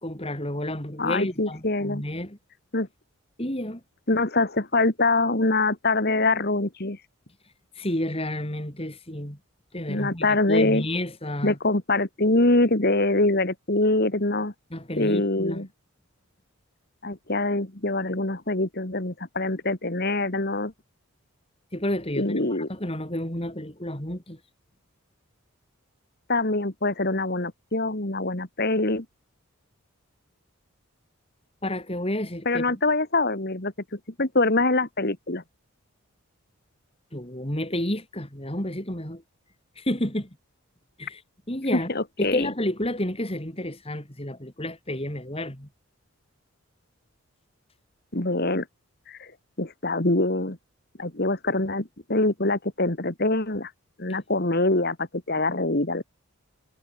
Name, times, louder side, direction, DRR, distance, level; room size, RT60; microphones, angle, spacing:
voice 1, 0.0-2.4 3.4-3.8 7.8-9.4 9.7-11.6 14.7-15.6 21.7-22.4 22.7-24.4 31.6-32.7 37.1-39.2 39.8-40.3 41.0-41.2 41.5-41.9 42.2-45.7, left 1 dB, 25° left, 4.0 m, -30 dB
voice 2, 1.0-2.0 2.7-2.9 4.1-7.0 9.9-10.9 11.4-14.5 15.0-15.7 17.0-20.7 22.2-22.7 26.3-29.1 32.5-35.4 41.7-42.5 48.1-48.7 49.1-49.3 49.6-50.6 51.0-53.7 54.0-56.0, left 2 dB, 45° left, 2.1 m, -24 dB
head